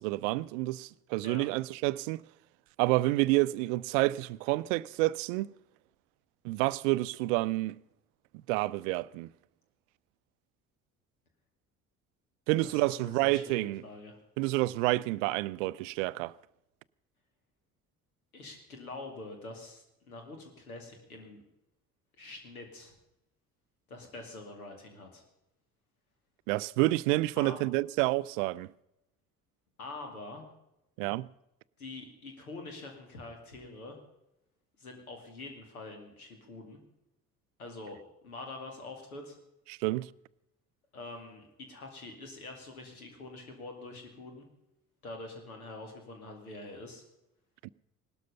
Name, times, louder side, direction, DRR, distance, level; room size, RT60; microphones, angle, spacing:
voice 1, 0.0-2.2 2.8-5.5 6.4-7.8 8.5-9.3 12.5-13.8 14.4-16.3 26.5-28.7 31.0-31.3 39.8-40.1 47.6-47.7, right 19 dB, 60° right, 0.5 m, -29 dB
voice 2, 12.6-14.2 18.3-21.4 22.2-23.0 23.9-25.2 27.4-27.6 29.8-30.5 31.8-34.0 34.8-36.8 37.6-39.4 40.9-44.5 45.0-47.0, left 2 dB, 80° left, 2.4 m, -45 dB
18.0 x 12.5 x 5.5 m
figure-of-eight pair, 50°, 43 cm